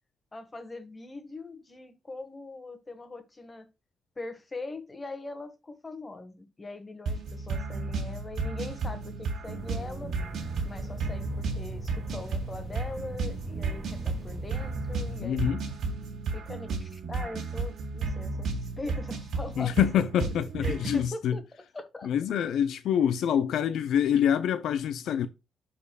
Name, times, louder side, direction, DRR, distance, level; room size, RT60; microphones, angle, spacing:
voice 1, 0.3-3.7 4.1-10.1 10.6-15.4 16.3-20.0 20.6-21.4 21.7-22.1 23.7-23.8, left 2 dB, 25° left, 1.5 m, -41 dB
sound 1, 7.1-21.1, right 4 dB, 75° right, 1.7 m, -33 dB
sound 2, 9.5-15.2, right 1 dB, 20° right, 2.1 m, -41 dB
voice 2, 15.2-15.6 19.6-21.4 22.0-25.3, left 9 dB, 85° left, 0.4 m, -26 dB
12.5 x 4.3 x 2.3 m
cardioid pair, 85°, 0 cm